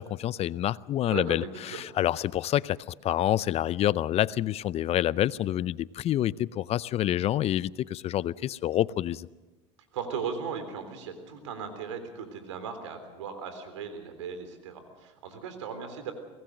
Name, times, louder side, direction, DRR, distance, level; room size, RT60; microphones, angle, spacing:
voice 1, 0.0-9.3, left 12 dB, 45° left, 20 dB, 0.6 m, -27 dB
voice 2, 1.1-1.8 9.9-16.1, right 6 dB, 85° right, 8 dB, 3.6 m, -37 dB
24.0 x 19.0 x 6.4 m, 1.1 s
hypercardioid pair, 90°, 15 cm